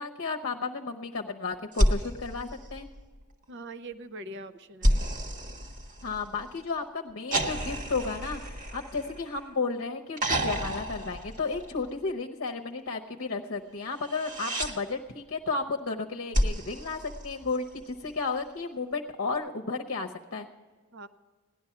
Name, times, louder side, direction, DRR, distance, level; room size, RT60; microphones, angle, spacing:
voice 1, 0.0-2.9 6.0-20.5, left 4 dB, 55° left, 3 dB, 0.8 m, -33 dB
sound 1, 1.7-3.3 4.8-6.5 7.3-9.6 10.2-12.0 14.0-14.7 16.3-17.8 19.3-19.4, equal, 35° right, 1.3 m, -30 dB
voice 2, 3.5-5.0 20.9-21.1, right 2 dB, 55° right, 13 dB, 0.7 m, -42 dB
16.5 x 11.0 x 5.8 m, 1.5 s
head